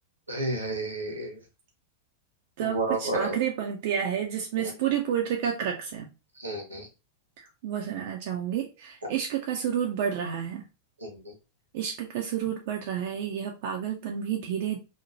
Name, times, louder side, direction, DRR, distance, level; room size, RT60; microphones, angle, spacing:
voice 1, 0.3-1.4 2.6-3.4 4.6-4.7 6.4-6.9 11.0-11.3, right 2 dB, 80° right, 2 dB, 0.9 m, -31 dB
voice 2, 2.6-6.1 7.4-10.7 11.7-14.8, right 9 dB, 50° right, 2 dB, 0.4 m, -30 dB
2.7 x 2.1 x 2.9 m, 0.28 s
figure-of-eight pair, 90°, 0 cm